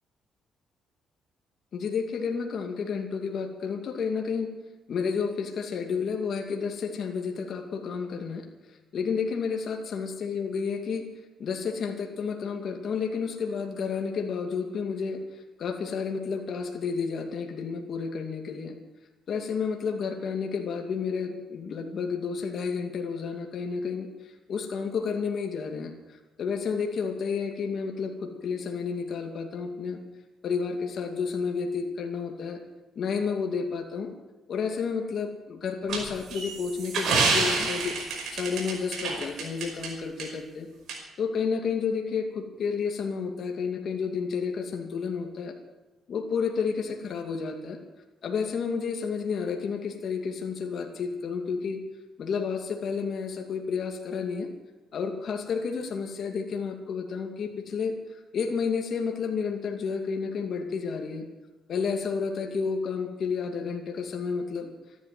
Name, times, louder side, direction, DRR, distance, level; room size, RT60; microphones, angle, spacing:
voice 1, 1.7-4.5 4.9-8.4 8.9-11.1 11.4-15.2 15.6-18.7 19.3-24.1 24.5-25.9 26.4-30.0 30.4-32.6 33.0-34.1 34.5-38.0 38.3-40.7 41.2-45.5 46.1-47.8 48.2-51.8 52.2-54.5 54.9-61.2 61.7-64.7, left 5 dB, 60° left, 3 dB, 2.4 m, -31 dB
sound 1, 35.9-39.9 40.2-40.3 40.9-41.0, right 4 dB, 70° right, 5.3 m, -28 dB
14.0 x 12.0 x 7.7 m, 1.1 s
cardioid pair, 90°, 0 cm